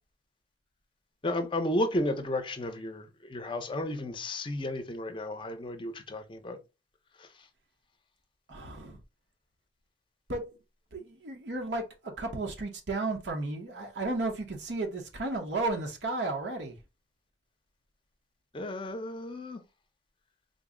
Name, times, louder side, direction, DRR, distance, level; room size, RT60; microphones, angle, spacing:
voice 1, 1.2-6.6 7.2-7.3 18.5-19.6, left 1 dB, 30° left, 0.5 m, -33 dB
voice 2, 8.5-9.0 10.3-10.5 10.9-16.8, right 2 dB, 80° right, 0.8 m, -33 dB
3.8 x 2.0 x 3.6 m
head